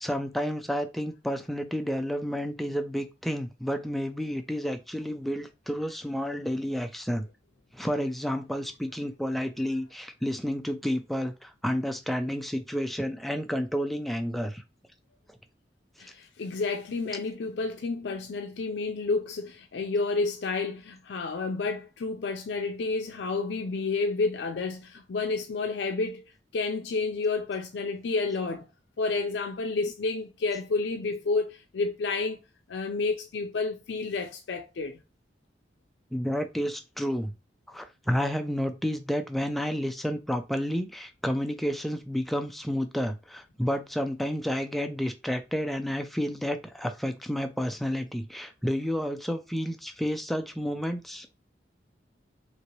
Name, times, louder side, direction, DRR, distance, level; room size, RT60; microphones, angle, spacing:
voice 1, 0.0-7.3 7.7-14.6 36.1-37.3 37.7-51.3, equal, ahead, 0.3 m, -30 dB
voice 2, 16.0-28.7 29.0-32.4 32.7-35.0, left 3 dB, 75° left, 0.4 m, -30 dB
3.0 x 2.8 x 2.9 m
head